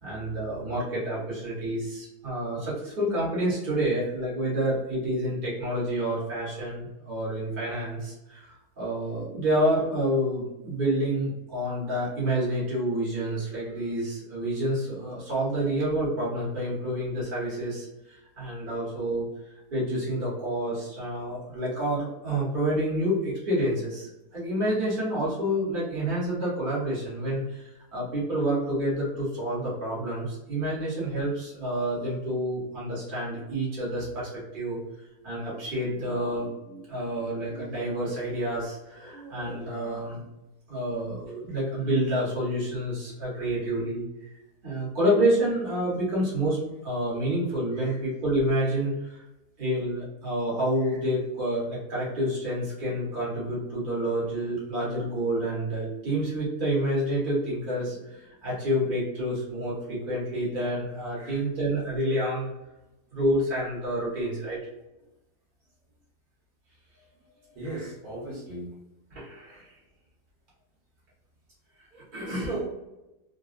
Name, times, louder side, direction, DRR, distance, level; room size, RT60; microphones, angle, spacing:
voice 1, 0.0-19.3 19.7-34.8 35.2-40.3 40.7-44.0 44.6-49.2 49.6-62.5 63.1-64.6 69.1-69.7 71.9-72.5, right 1 dB, 35° right, -7 dB, 1.4 m, -28 dB
voice 2, 67.5-68.7 69.5-69.6 72.2-72.7, right 2 dB, 65° right, -6 dB, 1.7 m, -37 dB
3.8 x 2.3 x 2.4 m, 0.97 s
omnidirectional pair, 1.7 m